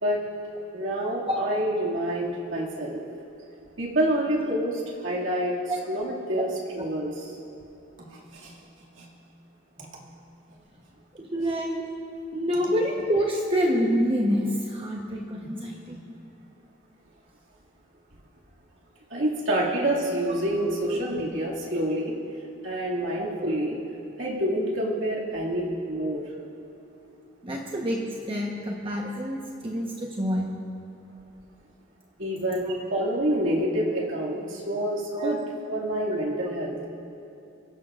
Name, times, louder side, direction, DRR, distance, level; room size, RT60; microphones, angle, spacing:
voice 1, 0.7-3.0 3.8-5.6 5.9-6.5 6.7-7.3 8.0-8.5 8.9-9.1 9.8-9.9 19.1-22.1 22.6-23.8 24.2-26.2 32.2-35.4 35.7-36.8, right 1 dB, 70° right, -4 dB, 2.3 m, -27 dB
voice 2, 11.2-11.9 12.3-16.0 20.9-21.0 23.2-23.4 27.4-30.5 32.7-32.8 35.1-35.4, equal, 30° right, -1 dB, 1.1 m, -27 dB
24.0 x 16.5 x 2.5 m, 2.8 s
head